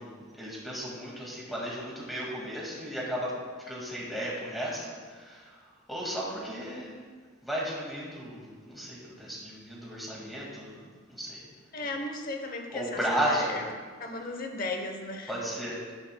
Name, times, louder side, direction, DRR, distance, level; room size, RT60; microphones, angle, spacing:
voice 1, 0.0-3.3 3.7-5.6 5.9-7.0 7.4-11.4 12.7-13.5 15.3-15.9, equal, ahead, -6 dB, 2.0 m, -34 dB
voice 2, 11.7-13.7 14.0-15.3, left 2 dB, 40° left, 4 dB, 0.9 m, -35 dB
11.5 x 10.0 x 2.2 m, 1.6 s
head